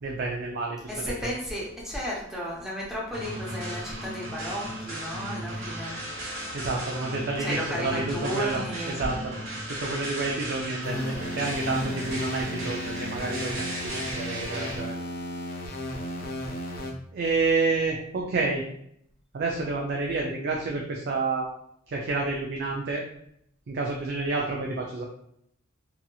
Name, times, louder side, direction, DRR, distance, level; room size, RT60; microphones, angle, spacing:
voice 1, 0.0-1.1 6.1-8.6 9.0-9.3 9.7-15.0 17.1-18.6 19.3-21.5 21.9-23.0 23.7-25.0, right 3 dB, 55° right, -1 dB, 0.4 m, -29 dB
voice 2, 0.9-5.9 7.4-9.0, equal, 5° right, -5 dB, 0.7 m, -34 dB
sound 1, 3.1-14.8, right 1 dB, 85° right, 1.3 m, -36 dB
sound 2, 10.8-16.9, left 1 dB, 45° left, 0.5 m, -34 dB
2.8 x 2.7 x 2.3 m, 0.71 s
head